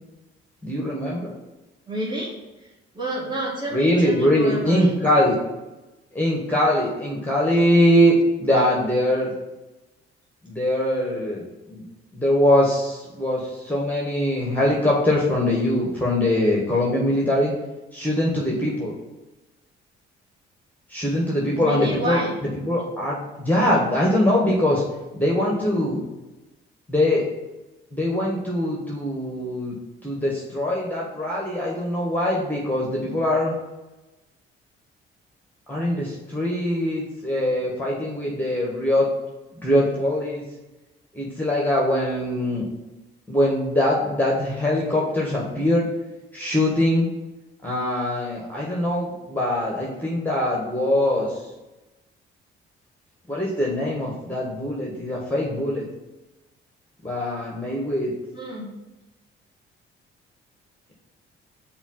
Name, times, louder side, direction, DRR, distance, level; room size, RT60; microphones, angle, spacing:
voice 1, 0.6-1.3 3.7-5.4 6.1-9.3 10.4-11.8 12.1-17.5 17.9-18.9 20.9-22.2 22.6-24.8 25.1-26.0 26.9-27.3 27.9-29.8 30.0-33.5 35.7-39.1 39.6-40.4 41.2-42.6 43.3-45.8 46.3-47.1 47.6-51.4 53.3-55.9 57.0-58.1, left 1 dB, 5° left, -3 dB, 1.7 m, -22 dB
voice 2, 1.9-4.9 21.5-22.3 58.3-58.7, right 1 dB, 15° right, -5 dB, 2.0 m, -30 dB
5.1 x 4.6 x 5.8 m, 1.0 s
figure-of-eight pair, 40°, 30 cm